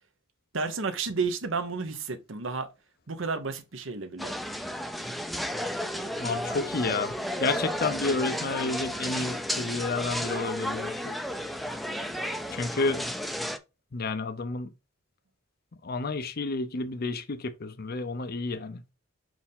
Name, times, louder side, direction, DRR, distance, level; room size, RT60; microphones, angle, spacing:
voice 1, 0.5-2.7 3.1-4.3, right 4 dB, 65° right, 1.0 m, -31 dB
sound 1, 4.2-13.6, equal, ahead, 0.5 m, -33 dB
voice 2, 6.2-7.1 7.4-11.1 12.5-13.1 13.9-14.7 15.8-18.8, left 3 dB, 50° left, 0.6 m, -30 dB
5.5 x 4.7 x 3.6 m
head